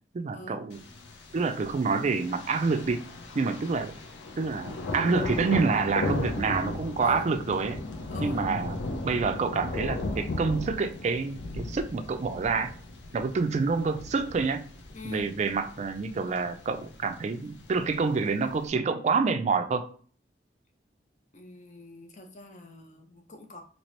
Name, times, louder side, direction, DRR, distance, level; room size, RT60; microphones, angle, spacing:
voice 1, 0.1-0.8 1.3-3.1 3.3-3.9 4.4-7.8 8.2-8.8 9.0-12.7 13.1-14.6 15.0-19.8, right 4 dB, 40° right, 9 dB, 0.3 m, -27 dB
Thunder, 0.7-18.7, left 2 dB, 85° left, 0.6 m, -37 dB
voice 2, 7.0-7.4 8.1-8.4 14.9-15.3 21.3-23.6, left 2 dB, 45° left, 4 dB, 0.6 m, -43 dB
2.9 x 2.8 x 3.1 m, 0.43 s
head